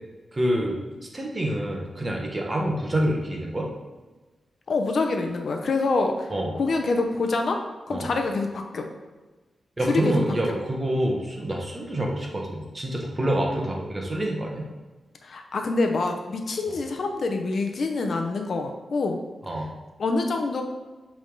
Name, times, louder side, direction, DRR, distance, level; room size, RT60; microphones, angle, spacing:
voice 1, 0.3-0.8 1.1-3.7 6.3-6.5 7.9-8.1 9.8-14.7 19.4-19.7, right 1 dB, 25° right, -1 dB, 1.2 m, -27 dB
voice 2, 4.7-6.3 6.5-7.6 7.9-8.9 9.9-10.2 10.5-10.6 15.2-19.2 20.0-20.6, left 3 dB, 60° left, 4 dB, 0.7 m, -26 dB
7.4 x 3.5 x 3.8 m, 1.2 s
wide cardioid pair, 110°, 0 cm